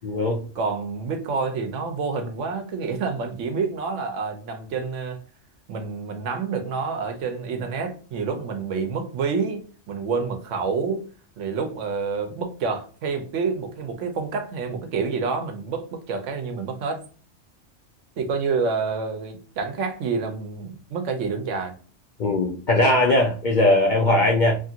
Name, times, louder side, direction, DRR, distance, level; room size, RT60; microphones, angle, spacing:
voice 1, 0.0-0.5 22.2-24.6, left 1 dB, 60° left, 0.5 m, -20 dB
voice 2, 0.6-5.2 5.7-11.1 11.4-17.0 18.2-21.7, right 5 dB, 75° right, 1.0 m, -28 dB
2.9 x 2.4 x 2.7 m
omnidirectional pair, 1.3 m